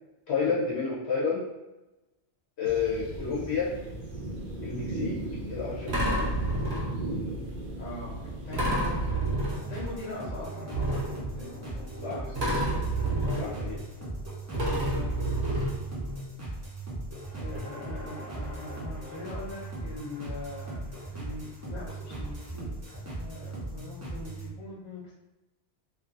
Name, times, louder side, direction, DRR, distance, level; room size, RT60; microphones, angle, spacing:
voice 1, 0.3-1.4 2.6-3.8 4.6-5.1 5.5-6.3 12.0-12.2 13.4-13.8, left 5 dB, 75° left, -7 dB, 1.0 m, -30 dB
sound 1, 2.7-9.1, right 2 dB, 50° right, 0.8 m, -37 dB
sound 2, 4.4-4.6 5.9-7.2 8.5-10.1 10.7-12.0 12.4-14.2 14.5-16.3 17.2-17.3 17.5-17.6, right 1 dB, 70° right, 1.1 m, -30 dB
voice 2, 7.8-9.0 9.7-12.4 13.2-13.5 14.5-15.3 17.3-20.8 21.1-25.1, left 2 dB, 40° left, -7 dB, 1.1 m, -42 dB
sound 3, 9.2-24.5, right 2 dB, 15° right, 0.6 m, -38 dB
2.7 x 2.5 x 2.5 m, 1.0 s
omnidirectional pair, 1.1 m